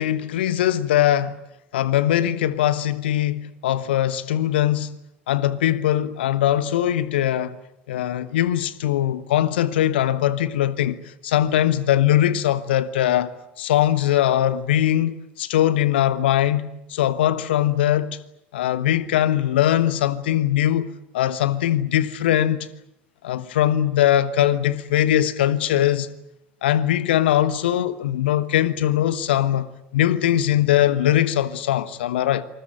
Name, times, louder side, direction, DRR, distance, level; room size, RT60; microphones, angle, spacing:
voice 1, 0.0-1.4 1.7-4.9 5.3-7.6 7.9-18.2 18.5-20.9 21.1-22.7 23.2-26.1 26.6-29.7 29.9-32.4, left 12 dB, 65° left, 1.2 m, -21 dB
27.0 x 20.5 x 9.0 m
figure-of-eight pair, 70°, 6 cm